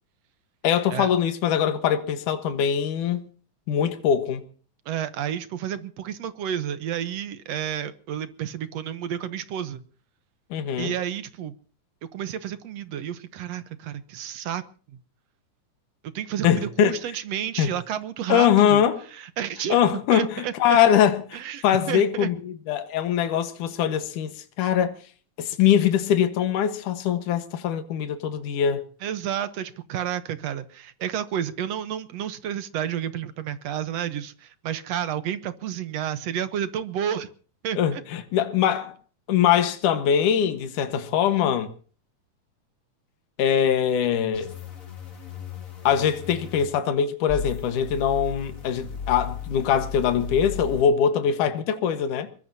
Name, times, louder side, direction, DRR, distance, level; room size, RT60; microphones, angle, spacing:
voice 1, 0.6-3.2 3.7-4.4 10.5-10.9 16.4-16.9 17.6-17.7 18.3-19.0 19.7-21.4 21.6-25.0 25.4-28.8 37.8-38.9 39.3-41.7 43.4-44.5 45.8-52.3, left 9 dB, 80° left, 2.9 m, -22 dB
voice 2, 4.9-9.8 10.8-11.6 12.1-14.6 16.1-18.8 19.1-19.8 20.1-20.8 21.3-22.3 29.0-37.3 37.6-38.0, right 10 dB, 65° right, 1.9 m, -31 dB
sound 1, 44.3-46.7 47.3-50.8, left 6 dB, 30° left, 2.3 m, -36 dB
22.0 x 22.0 x 2.8 m
omnidirectional pair, 3.6 m